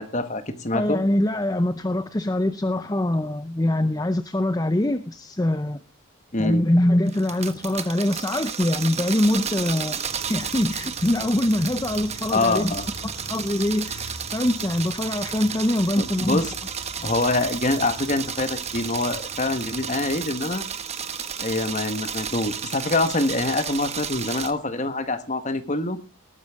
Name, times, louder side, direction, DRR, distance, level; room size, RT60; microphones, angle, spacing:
voice 1, 0.0-1.0 6.3-6.6 12.3-12.9 16.0-16.5 17.0-20.6 21.4-26.0, left 2 dB, 35° left, 1.4 m, -25 dB
voice 2, 0.7-5.8 6.4-10.0 10.3-12.8 13.0-16.4 17.0-17.1, left 1 dB, 15° left, 0.6 m, -23 dB
sound 1, 7.1-24.5, right 7 dB, 30° right, 1.1 m, -32 dB
Motorcycle, 9.9-20.6, left 1 dB, 75° left, 5.2 m, -44 dB
18.5 x 9.6 x 3.6 m
head